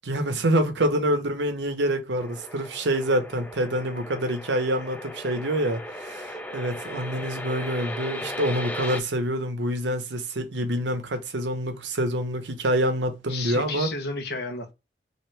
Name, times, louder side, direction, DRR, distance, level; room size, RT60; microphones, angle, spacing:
voice 1, 0.0-13.9, right 1 dB, 85° right, 0.8 m, -26 dB
sound 1, 2.2-9.0, left 1 dB, 10° left, 0.3 m, -37 dB
voice 2, 13.3-14.7, left 3 dB, 65° left, 0.9 m, -33 dB
3.0 x 2.5 x 3.1 m
head